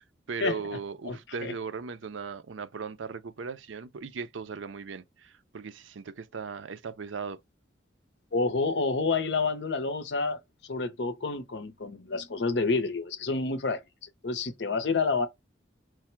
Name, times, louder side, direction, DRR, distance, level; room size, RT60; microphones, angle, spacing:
voice 1, 0.0-7.4, right 5 dB, 85° right, 0.5 m, -38 dB
voice 2, 1.0-1.5 8.3-15.3, left 3 dB, 65° left, 0.7 m, -29 dB
4.7 x 2.1 x 4.3 m
head